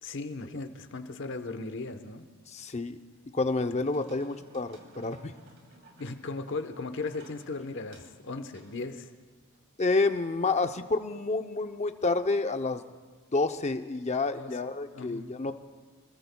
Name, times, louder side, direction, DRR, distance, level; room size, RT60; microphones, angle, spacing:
voice 1, 0.0-2.3 5.9-9.1 14.4-14.6 14.9-15.3, left 3 dB, 55° left, 8 dB, 1.0 m, -37 dB
voice 2, 2.5-3.0 3.3-5.3 9.8-12.8 13.3-15.5, left 3 dB, 30° left, 8 dB, 0.6 m, -29 dB
sound 1, 3.8-9.6, right 2 dB, 50° right, 3.0 m, -57 dB
27.5 x 21.0 x 2.3 m, 1.5 s
head